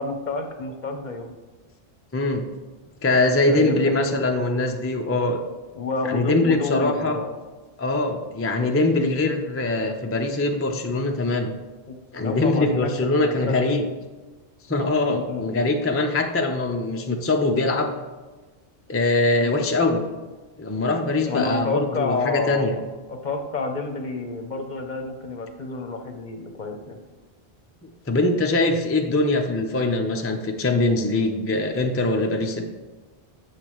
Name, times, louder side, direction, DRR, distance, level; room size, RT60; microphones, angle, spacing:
voice 1, 0.0-1.3 3.2-3.8 4.1-4.2 5.7-7.3 11.9-13.6 15.1-15.4 19.4-19.6 21.3-22.8 23.1-27.0, left 3 dB, 50° left, 5 dB, 0.8 m, -29 dB
voice 2, 2.1-2.4 3.0-5.4 6.0-7.2 7.8-11.5 12.1-13.8 14.7-17.9 18.9-20.0 20.6-22.7 27.8-32.6, left 2 dB, 20° left, 3 dB, 0.4 m, -22 dB
8.2 x 6.6 x 3.0 m, 1.3 s
omnidirectional pair, 1.1 m